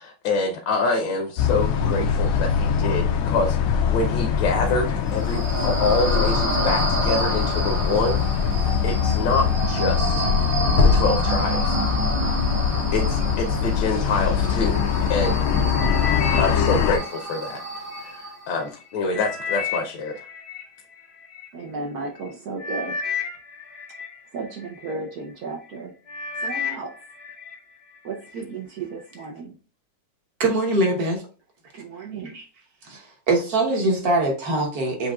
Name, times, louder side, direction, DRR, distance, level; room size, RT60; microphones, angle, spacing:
voice 1, 0.0-8.2 8.5-10.3 10.8-11.8 12.3-12.4 12.9-14.8 15.1-15.4 16.3-17.6 18.0-20.2, left 3 dB, 70° left, 1.3 m, -26 dB
sound 1, 1.4-17.0, left 7 dB, 85° left, 1.5 m, -22 dB
sound 2, 5.1-18.5, right 2 dB, 85° right, 2.7 m, -29 dB
sound 3, 15.8-18.1 18.6-21.5 22.2-22.3 22.6-25.0 25.5-25.8 26.1-27.6 27.9-28.4 29.0-29.1, left 6 dB, 45° left, 0.8 m, -32 dB
voice 2, 21.5-23.0 24.3-25.9 26.4-27.0 28.0-29.6 31.7-32.4, right 3 dB, 65° right, 0.9 m, -34 dB
voice 3, 30.4-31.2 32.3-32.4 32.8-35.1, right 2 dB, 50° right, 1.4 m, -23 dB
7.3 x 2.8 x 2.3 m
omnidirectional pair, 2.3 m